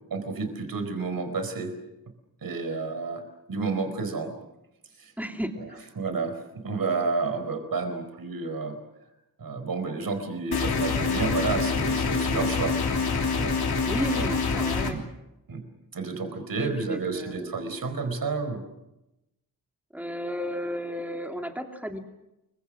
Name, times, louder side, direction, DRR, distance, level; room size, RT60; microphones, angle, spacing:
voice 1, 0.1-1.7 2.4-4.4 5.0-5.1 5.6-5.7 6.0-8.8 9.4-12.8 13.1-13.6 14.1-14.3 14.8-15.0 15.5-15.6 15.9-18.7, right 4 dB, 65° right, 8 dB, 4.4 m, -31 dB
voice 2, 5.2-5.8 13.8-15.0 16.6-17.5 19.9-22.0, equal, 5° right, 4 dB, 3.0 m, -33 dB
sound 1, 10.5-14.9, left 4 dB, 80° left, 3.4 m, -26 dB
29.0 x 23.5 x 6.3 m, 0.91 s
wide cardioid pair, 130°, 37 cm